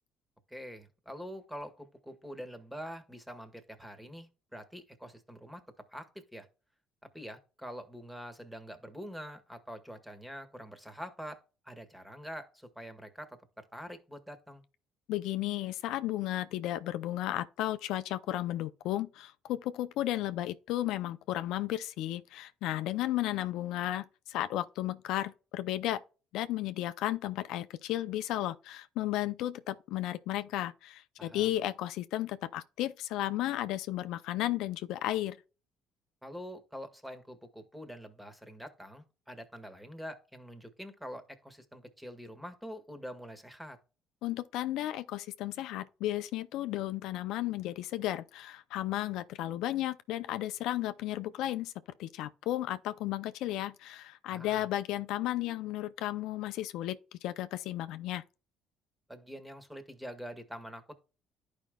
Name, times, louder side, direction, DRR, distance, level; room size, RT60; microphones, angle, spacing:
voice 1, 0.5-5.6 5.9-6.5 7.1-14.6 31.2-31.6 36.2-43.8 54.3-54.7 59.1-61.0, equal, 5° right, 1.6 m, -45 dB
voice 2, 15.1-26.0 26.3-35.4 44.2-51.7 52.0-58.2, left 14 dB, 75° left, 0.5 m, -34 dB
11.5 x 5.1 x 2.3 m
supercardioid pair, 70°, 0 cm